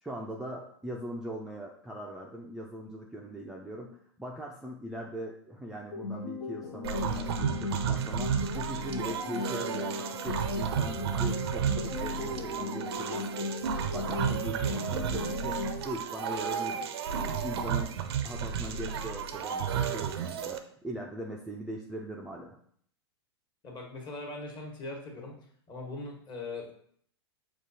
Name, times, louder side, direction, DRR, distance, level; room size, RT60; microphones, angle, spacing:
voice 1, 0.0-13.5 13.9-18.0 18.2-22.6, equal, 5° right, -2 dB, 0.4 m, -40 dB
sound 1, 5.9-15.9, left 3 dB, 65° left, 0.6 m, -37 dB
sound 2, 6.8-20.6, right 7 dB, 65° right, 0.5 m, -32 dB
voice 2, 23.6-25.3 25.7-26.7, left 2 dB, 30° left, -1 dB, 1.3 m, -40 dB
6.0 x 2.4 x 2.7 m, 0.62 s
hypercardioid pair, 100°, 14 cm